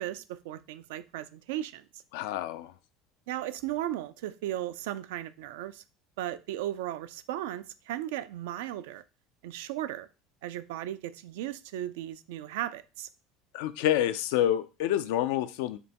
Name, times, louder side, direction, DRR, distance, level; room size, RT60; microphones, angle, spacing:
voice 1, 0.0-2.0 3.3-5.8 6.2-9.0 9.4-10.1 10.4-13.1, right 13 dB, 80° right, 0.3 m, -36 dB
voice 2, 2.1-2.7 13.5-15.8, left 12 dB, 80° left, 0.3 m, -28 dB
5.1 x 2.2 x 2.8 m
supercardioid pair, 95°, 0 cm